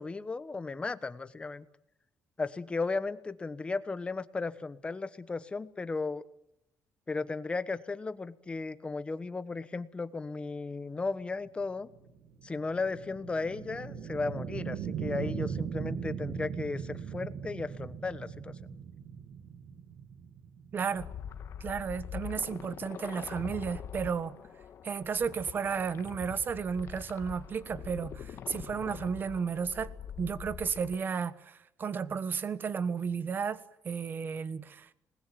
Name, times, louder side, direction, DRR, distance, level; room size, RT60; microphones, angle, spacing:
voice 1, 0.0-1.6 2.4-6.2 7.1-11.9 12.4-18.7, left 3 dB, 20° left, 1.2 m, -35 dB
sound 1, 11.5-22.2, right 7 dB, 65° right, 2.1 m, -39 dB
voice 2, 20.7-21.1 21.6-24.4 24.8-29.9 30.2-33.6 33.8-34.9, right 6 dB, 40° right, 1.3 m, -33 dB
sound 2, 20.9-31.0, left 8 dB, 55° left, 1.5 m, -44 dB
27.5 x 20.0 x 9.2 m
cardioid pair, 135°, 5 cm